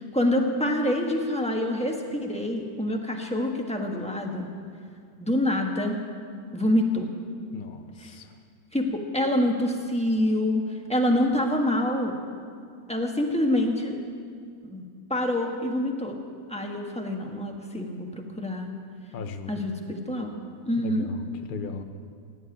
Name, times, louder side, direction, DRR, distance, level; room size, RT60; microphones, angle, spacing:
voice 1, 0.0-4.5 5.2-6.0 6.5-7.1 8.0-8.2 8.7-12.2 12.9-14.0 14.6-14.8 15.1-16.2 16.5-18.7 19.5-20.3 20.6-21.1, left 1 dB, 5° left, 1 dB, 1.2 m, -26 dB
voice 2, 7.5-8.4 19.1-19.5 20.7-21.8, left 5 dB, 40° left, 6 dB, 0.8 m, -37 dB
16.0 x 7.9 x 9.8 m, 2.2 s
omnidirectional pair, 1.9 m